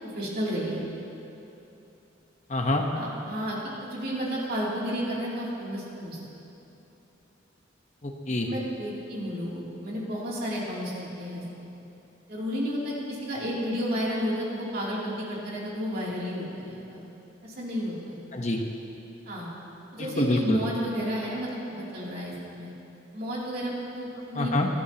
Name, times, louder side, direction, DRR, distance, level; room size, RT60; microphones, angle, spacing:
voice 1, 0.0-0.8 2.9-6.2 8.4-11.7 12.3-17.0 17.4-18.2 19.2-19.5 19.9-22.7 23.1-24.5, equal, 50° right, -6 dB, 3.0 m, -32 dB
voice 2, 2.5-2.8 8.0-8.5 18.3-18.6 20.0-20.6 24.3-24.7, left 1 dB, 35° left, 2 dB, 1.1 m, -26 dB
23.5 x 11.5 x 3.0 m, 3.0 s
head